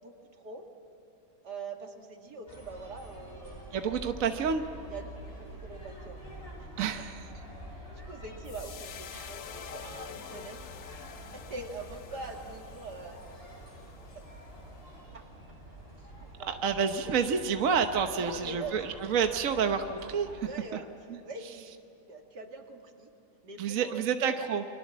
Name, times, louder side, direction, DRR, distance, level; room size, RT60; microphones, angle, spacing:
voice 1, 0.0-0.7 1.4-3.8 4.9-5.1 5.3-6.3 6.6-6.9 7.9-10.6 11.3-13.2 14.1-14.2 15.1-15.2 16.4-16.6 18.2-18.8 20.4-20.9 21.2-21.7 22.1-23.1 23.4-24.3, right 3 dB, 85° right, 3 dB, 2.9 m, -43 dB
sound 1, 2.5-20.3, right 1 dB, 35° left, 8.5 m, -47 dB
voice 2, 3.7-4.6 6.8-7.2 9.1-9.3 16.5-20.5 23.6-24.6, right 6 dB, 55° right, 6 dB, 1.4 m, -29 dB
sound 2, 8.4-14.8, left 9 dB, 65° left, 1.2 m, -47 dB
30.0 x 24.0 x 7.4 m, 3.0 s
omnidirectional pair, 1.7 m